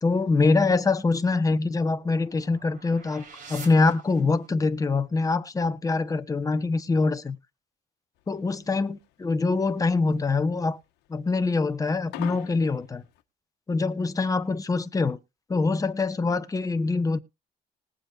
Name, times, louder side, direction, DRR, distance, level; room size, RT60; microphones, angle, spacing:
voice 1, 0.0-7.4 8.3-10.8 11.1-13.0 13.7-15.2 15.5-17.2, left 3 dB, 20° left, 1.1 m, -24 dB
sound 1, 1.3-4.7, right 5 dB, 50° right, 4.7 m, -48 dB
sound 2, 8.2-13.2, left 15 dB, 85° left, 1.2 m, -42 dB
20.0 x 7.6 x 2.5 m
cardioid pair, 110°, 17 cm